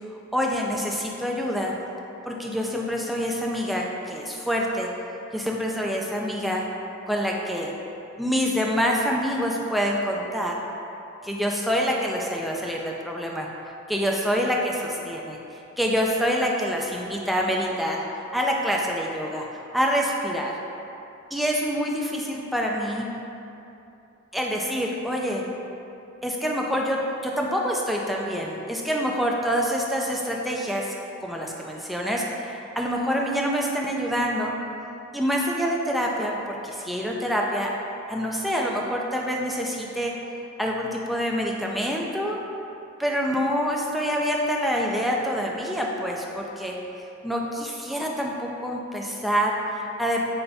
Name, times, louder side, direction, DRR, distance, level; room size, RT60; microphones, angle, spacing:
voice 1, 0.3-1.7 2.3-4.9 5.3-6.6 7.1-7.7 8.2-10.6 11.2-13.5 13.9-15.4 15.8-18.0 18.3-19.5 19.7-20.5 21.3-23.1 24.3-25.4 26.2-30.9 31.2-34.6 35.1-37.7 38.1-40.1 40.6-42.4 43.0-46.8 47.2-50.2, equal, ahead, -2 dB, 0.3 m, -26 dB
4.0 x 3.3 x 3.4 m, 2.8 s
head